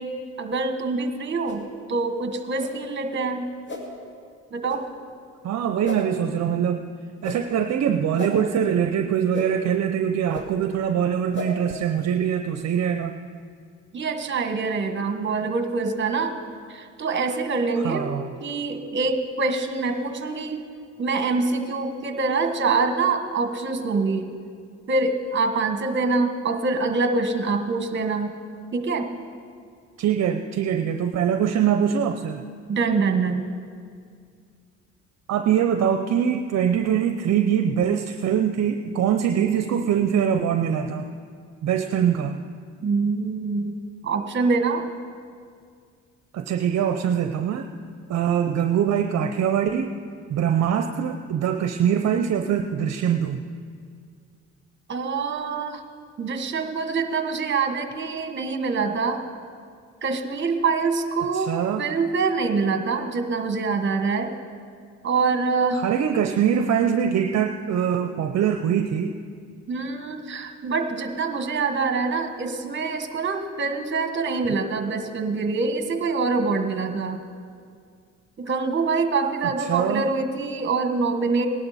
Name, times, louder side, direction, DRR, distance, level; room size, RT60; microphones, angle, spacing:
voice 1, 0.0-3.5 4.5-4.9 13.9-16.4 16.7-18.1 18.4-20.6 21.0-24.3 24.9-28.3 28.7-29.1 32.7-33.5 42.8-43.8 44.0-44.9 54.9-55.8 56.2-59.2 60.0-61.5 61.8-64.3 65.0-65.8 69.7-77.2 78.4-81.5, right 4 dB, 40° right, 6 dB, 1.3 m, -25 dB
sound 1, 1.4-1.6 2.6-2.7 3.7-3.8 4.7-4.8 5.8-6.0 7.2-7.4 8.2-8.3 9.3-9.5 10.3-10.4 11.3-11.5, left 2 dB, 40° left, 2.4 m, -33 dB
voice 2, 5.4-6.9 7.2-13.2 17.8-18.3 30.0-32.4 35.3-41.1 41.6-42.4 46.3-47.7 48.1-49.9 50.3-53.4 61.3-61.9 65.8-69.1 79.4-80.0, right 8 dB, 60° right, 6 dB, 0.7 m, -23 dB
18.0 x 11.5 x 4.2 m, 2.2 s
cardioid pair, 90°, 30 cm